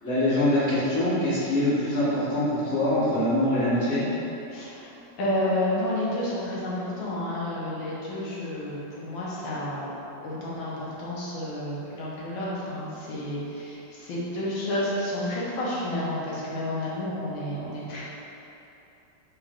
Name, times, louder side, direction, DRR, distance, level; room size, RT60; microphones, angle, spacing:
voice 1, 0.0-4.0, left 1 dB, 10° left, -12 dB, 1.0 m, -24 dB
voice 2, 4.5-9.9 10.2-18.0, left 1 dB, 85° left, -7 dB, 1.7 m, -30 dB
4.9 x 4.1 x 2.5 m, 2.9 s
omnidirectional pair, 2.1 m